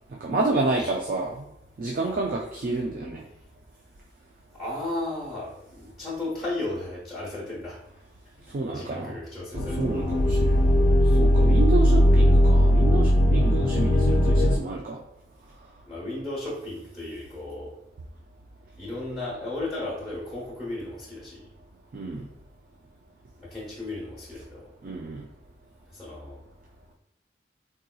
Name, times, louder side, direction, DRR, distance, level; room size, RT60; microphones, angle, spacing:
voice 1, 0.2-1.5 1.8-3.2 8.5-9.2 9.5-15.0 21.9-22.3 24.8-25.2, right 3 dB, 45° right, -1 dB, 0.3 m, -29 dB
voice 2, 4.5-7.8 8.5-10.0 15.8-17.7 18.8-21.5 23.4-24.7 25.9-26.4, left 2 dB, ahead, -6 dB, 0.8 m, -35 dB
sound 1, 9.6-14.6, equal, 80° left, 0.4 m, -19 dB
3.7 x 2.7 x 2.3 m, 0.82 s
head